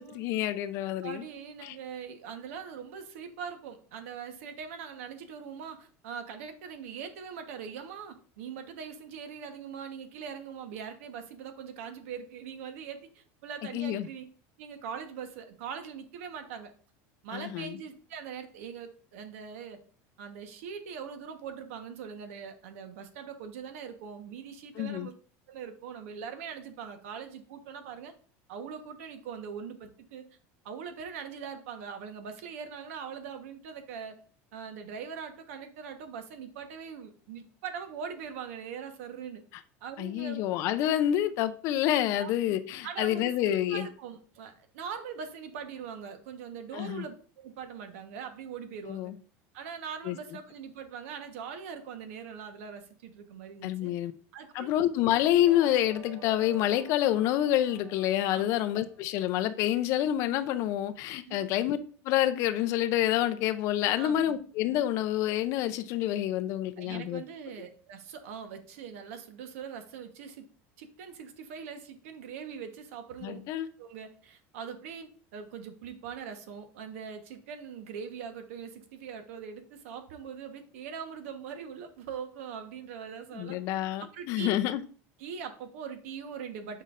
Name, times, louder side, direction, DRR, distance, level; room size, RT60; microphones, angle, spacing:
voice 1, 0.0-1.2 1.6-1.7 13.7-14.1 17.3-17.8 24.8-25.1 40.0-43.9 46.7-47.0 48.9-49.2 50.1-50.2 53.6-54.1 54.5-61.8 62.0-67.2 73.2-73.7 83.3-84.8, left 12 dB, 40° left, 0.4 m, -28 dB
voice 2, 1.0-14.2 14.6-16.7 17.2-19.8 20.2-25.1 25.5-28.1 28.5-30.3 30.6-34.2 34.5-39.4 39.8-40.4 42.2-49.1 49.5-53.9 54.3-54.7 58.3-58.6 61.2-61.4 64.0-64.4 66.8-70.5 70.8-73.4 73.8-83.6 84.1-84.5 85.2-86.8, right 7 dB, 85° right, 1.1 m, -42 dB
sound 1, 55.4-59.1, right 9 dB, 45° right, 0.9 m, -49 dB
8.3 x 5.3 x 2.5 m
cardioid pair, 175°, 7 cm